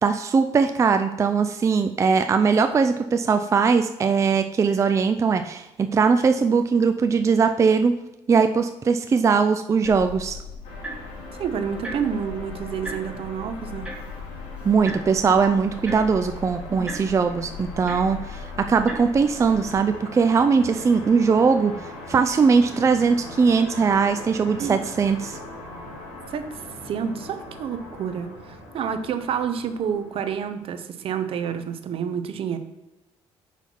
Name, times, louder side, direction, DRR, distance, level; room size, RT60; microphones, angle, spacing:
voice 1, 0.0-8.0 8.3-10.4 14.6-21.7 22.1-25.4, right 5 dB, 30° right, 8 dB, 0.4 m, -20 dB
sound 1, 9.8-19.8, left 2 dB, 10° right, 2.5 m, -38 dB
sound 2, 10.6-30.6, left 2 dB, 75° left, 2.3 m, -41 dB
voice 2, 11.4-13.9 16.7-16.9 24.6-24.8 26.3-26.4 26.8-32.6, right 7 dB, 60° right, 9 dB, 0.8 m, -29 dB
5.7 x 5.7 x 4.5 m, 0.95 s
cardioid pair, 100°, 11 cm